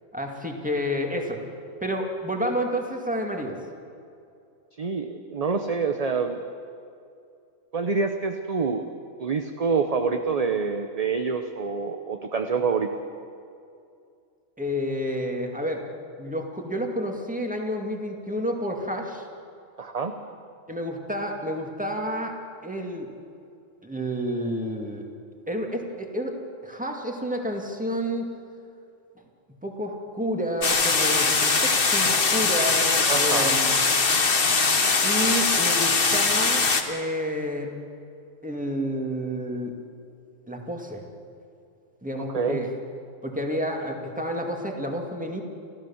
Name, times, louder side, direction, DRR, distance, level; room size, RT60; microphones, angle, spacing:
voice 1, 0.1-1.5 1.8-3.6 14.6-15.8 16.2-19.3 20.7-22.4 22.6-23.1 23.8-25.0 25.5-28.3 29.6-33.8 35.0-37.7 38.4-39.8 40.5-41.0 42.0-42.7 43.2-45.4, equal, 5° right, 2 dB, 2.2 m, -30 dB
voice 2, 4.8-6.4 7.7-8.9 9.2-12.9 19.8-20.1 33.1-33.6 42.2-42.6, right 5 dB, 35° right, 6 dB, 0.8 m, -26 dB
sound 1, 30.6-36.8, left 4 dB, 45° left, 1.5 m, -21 dB
29.5 x 14.0 x 7.2 m, 2.5 s
omnidirectional pair, 1.3 m